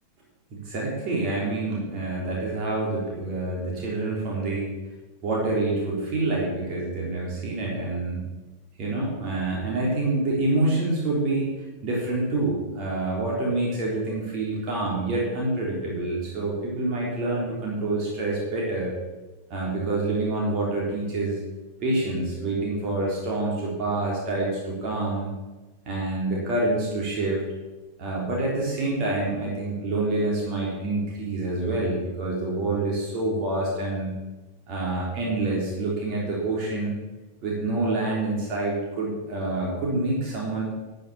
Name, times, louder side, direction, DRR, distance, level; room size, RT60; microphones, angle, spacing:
voice 1, 0.5-4.7 5.2-8.2 8.8-11.5 11.8-18.9 19.5-21.4 21.8-25.3 25.9-27.4 28.0-34.1 34.7-37.0 37.4-40.6, right 2 dB, 40° right, -4 dB, 3.6 m, -27 dB
12.5 x 6.7 x 7.0 m, 1.2 s
figure-of-eight pair, 90°, 0 cm